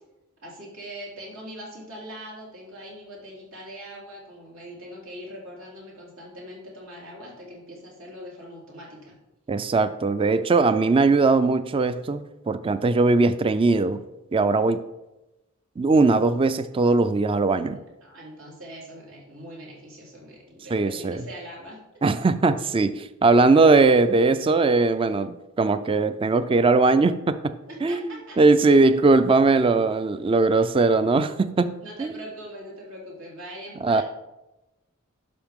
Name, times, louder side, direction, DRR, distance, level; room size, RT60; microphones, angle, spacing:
voice 1, 0.4-9.2 17.7-21.8 27.7-28.4 31.8-34.0, equal, 80° right, -4 dB, 3.5 m, -41 dB
voice 2, 9.5-14.0 14.3-14.8 15.8-17.8 20.7-21.2 22.0-27.5 27.8-28.0 28.4-32.1 33.8-34.0, right 3 dB, 25° right, 12 dB, 0.3 m, -20 dB
12.0 x 5.9 x 3.6 m, 0.99 s
head